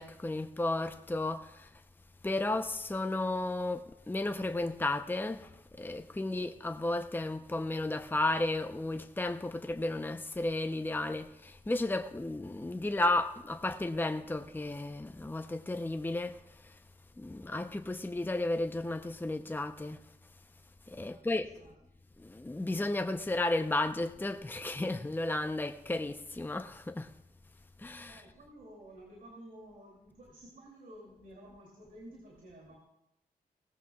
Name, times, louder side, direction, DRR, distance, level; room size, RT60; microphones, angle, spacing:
voice 1, 0.0-1.7 2.2-16.8 17.2-20.0 20.9-21.5 22.2-27.1 27.8-28.2, left 2 dB, 15° left, 0.7 m, -33 dB
voice 2, 21.0-21.7 28.1-32.8, right 1 dB, 70° right, 2.9 m, -53 dB
18.5 x 14.5 x 2.4 m
cardioid pair, 60°, 15 cm